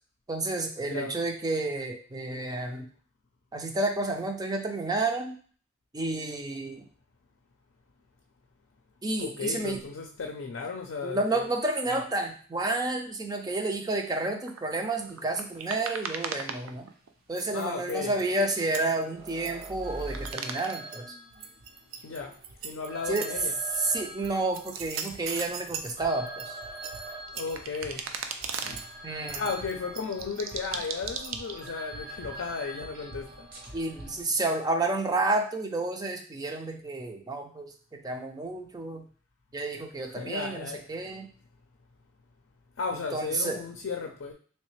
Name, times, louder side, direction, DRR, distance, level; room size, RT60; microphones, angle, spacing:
voice 1, 0.3-2.9 3.5-5.3 5.9-6.9 9.0-9.8 11.0-16.9 17.3-21.1 23.1-23.3 23.8-26.6 29.0-29.4 33.7-39.0 39.5-41.3 43.1-43.6, right 2 dB, 20° right, 4 dB, 0.4 m, -30 dB
voice 2, 0.8-1.2 9.2-11.5 11.9-12.0 17.5-18.2 22.0-22.4 22.6-23.5 27.3-28.1 29.3-33.5 40.1-40.8 42.8-44.3, left 5 dB, 75° left, 2 dB, 0.5 m, -35 dB
sound 1, 14.5-17.1 17.3-19.7 20.0-21.0 21.3-23.8 24.2-25.9 26.3-28.9 29.3-31.7, right 6 dB, 80° right, 0.4 m, -37 dB
sound 2, 15.0-15.6 16.9-17.0 18.2-34.2, right 1 dB, 50° right, 0.8 m, -44 dB
3.2 x 3.2 x 3.1 m, 0.43 s
head